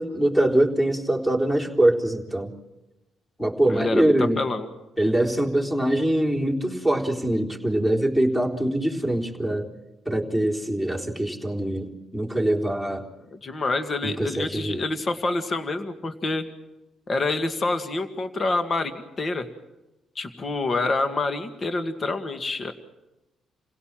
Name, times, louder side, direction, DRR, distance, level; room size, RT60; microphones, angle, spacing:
voice 1, 0.0-2.5 3.4-4.4 5.0-9.7 10.1-13.0 14.0-14.8, right 1 dB, 10° left, 1 dB, 3.8 m, -23 dB
voice 2, 3.7-4.7 13.3-16.4 17.1-19.5 20.2-22.7, left 3 dB, 40° left, 8 dB, 2.0 m, -27 dB
28.5 x 17.0 x 7.5 m, 1.0 s
cardioid pair, 90°, 0 cm